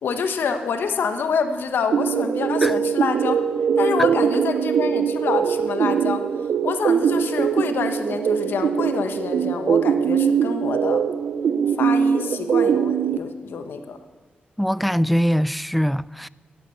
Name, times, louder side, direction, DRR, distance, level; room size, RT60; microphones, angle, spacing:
voice 1, 0.0-3.4 3.8-6.2 6.6-11.0 11.8-14.0, left 5 dB, 80° left, 1.1 m, -27 dB
sound 1, 1.9-13.2, right 7 dB, 80° right, 0.5 m, -22 dB
voice 2, 14.6-16.3, equal, ahead, 0.3 m, -22 dB
11.0 x 8.4 x 8.2 m
cardioid pair, 70°, 4 cm